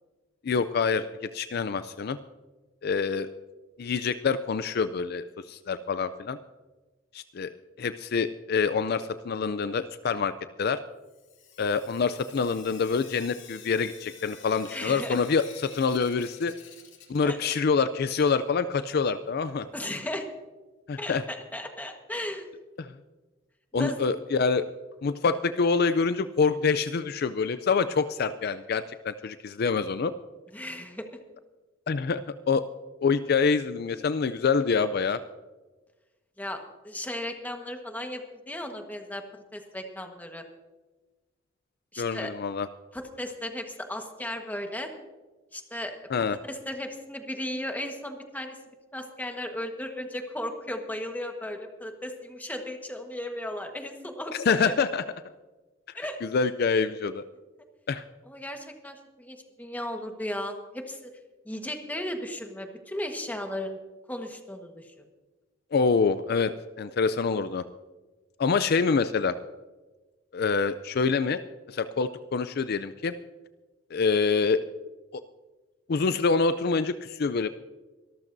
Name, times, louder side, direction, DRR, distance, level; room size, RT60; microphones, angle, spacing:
voice 1, 0.4-2.2 2.8-3.3 3.8-6.4 7.1-7.5 7.8-10.3 10.6-10.8 11.6-15.4 15.7-16.5 17.1-19.7 20.9-21.2 22.8-22.9 23.7-24.6 25.0-30.1 31.9-32.2 32.5-32.6 33.0-35.2 42.0-42.7 46.1-46.4 54.5-55.0 56.2-57.2 57.9-58.0 65.7-66.5 66.8-67.6 68.4-69.3 70.3-71.4 71.7-73.1 73.9-74.6 75.1-75.2 75.9-77.5, left 5 dB, 55° left, 12 dB, 0.4 m, -26 dB
Sink (filling or washing) / Drip, 11.0-17.8 18.0-20.0 21.2-21.3 21.6-21.7 21.9-22.0 24.9-25.0 25.5-25.6 26.1-26.2 26.8-26.9 27.6-27.7 28.5-28.6, left 7 dB, 70° left, 2.4 m, -51 dB
voice 2, 14.7-15.2 17.2-17.4 19.7-20.3 21.0-22.5 23.7-24.0 30.5-31.0 36.4-39.2 39.5-40.4 41.9-42.3 42.9-44.9 45.5-46.0 46.5-48.6 48.9-54.7 55.9-56.2 58.3-61.1 61.4-63.8 64.1-64.9, left 1 dB, 10° left, 4 dB, 1.4 m, -35 dB
24.0 x 13.5 x 2.7 m, 1.2 s
head